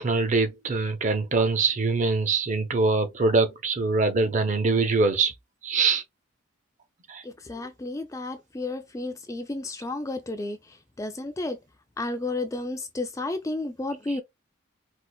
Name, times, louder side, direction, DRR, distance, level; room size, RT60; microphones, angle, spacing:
voice 1, 0.0-5.3 5.6-6.0 7.1-7.2, right 3 dB, 35° right, 0.5 m, -23 dB
voice 2, 7.2-11.6 12.0-14.2, left 2 dB, 15° left, 0.3 m, -32 dB
4.3 x 2.4 x 2.3 m
head